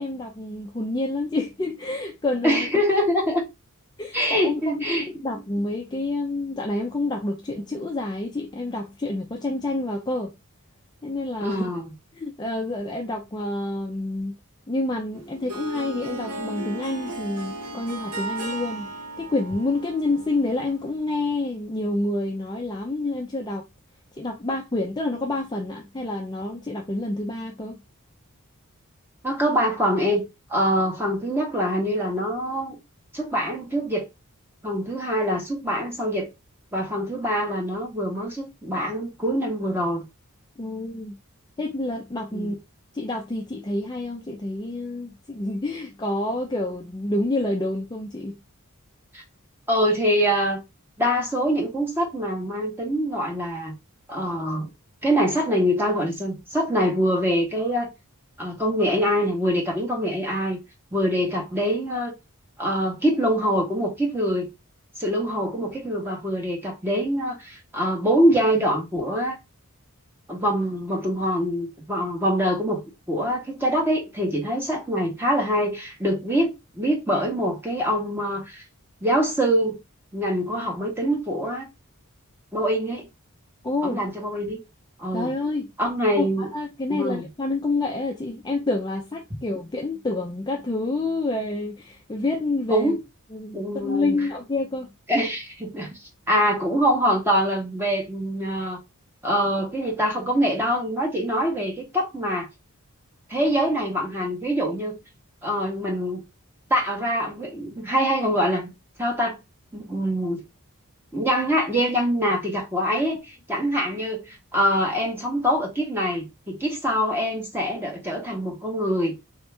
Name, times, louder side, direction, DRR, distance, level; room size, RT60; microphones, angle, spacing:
voice 1, 0.0-2.7 4.0-10.3 11.0-11.7 12.2-14.3 14.7-18.9 19.2-23.6 24.1-27.7 40.6-41.1 41.6-42.6 42.9-48.4 83.6-84.0 85.1-85.7 86.2-92.9 93.3-94.9, left 2 dB, 20° left, 0.4 m, -28 dB
voice 2, 2.4-3.4 4.1-5.1 11.4-11.9 29.2-30.2 30.5-32.8 33.1-34.0 34.6-36.3 36.7-40.0 42.3-42.5 49.1-49.2 49.7-50.6 51.0-53.7 54.1-54.7 55.0-57.9 58.4-60.6 60.9-62.1 62.6-64.5 65.0-69.4 70.3-72.8 73.1-78.6 79.0-79.8 80.1-81.7 82.5-83.1 83.8-84.6 85.0-85.3 85.8-86.5 86.9-87.2 92.7-93.0 93.5-94.1 95.1-96.0 96.3-98.8 99.2-102.5 103.3-105.0 105.4-106.2 106.7-108.7 109.0-109.4 109.7-110.4 111.1-119.1, equal, 10° right, 1.1 m, -24 dB
Harp, 15.1-20.9, right 1 dB, 80° right, 1.3 m, -35 dB
3.5 x 2.8 x 3.2 m
head